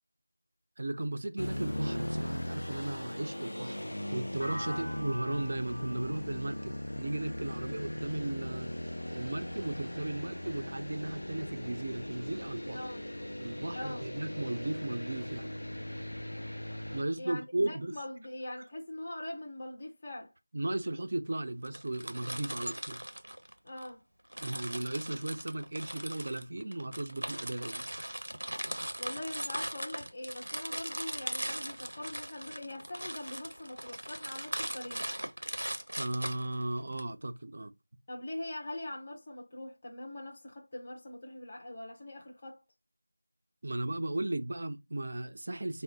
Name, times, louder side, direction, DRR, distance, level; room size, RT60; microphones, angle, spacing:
voice 1, 0.8-8.7 9.1-12.8 13.4-15.5 16.9-17.9 20.5-23.0 24.4-27.8 36.0-37.7 43.6-45.8, right 2 dB, 35° right, 0.4 m, -36 dB
sound 1, 1.4-17.0, left 1 dB, 90° left, 0.4 m, -39 dB
sound 2, 4.4-8.3, equal, 75° left, 0.8 m, -45 dB
voice 2, 12.6-13.0 13.7-14.1 17.2-20.3 23.6-24.0 29.0-35.1 38.1-42.6, left 1 dB, 20° left, 0.5 m, -42 dB
sound 3, 21.6-23.9 24.3-37.0, right 1 dB, 90° right, 0.6 m, -39 dB
3.7 x 2.0 x 3.7 m
figure-of-eight pair, 175°, 0 cm